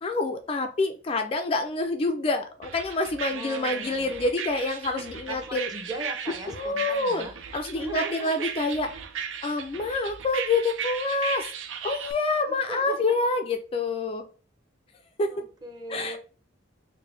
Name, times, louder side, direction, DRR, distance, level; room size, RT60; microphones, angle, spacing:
voice 1, 0.0-5.7 6.5-8.9 9.4-11.5 11.8-14.3 15.2-15.4 15.9-16.2, left 3 dB, 30° left, 6 dB, 0.3 m, -27 dB
sound 1, 2.6-12.1, right 8 dB, 90° right, 0.5 m, -36 dB
voice 2, 3.3-4.1 5.3-7.4 7.7-8.5 12.7-13.0 15.3-16.2, right 2 dB, 20° right, 3 dB, 0.8 m, -38 dB
4.6 x 2.1 x 3.2 m, 0.38 s
head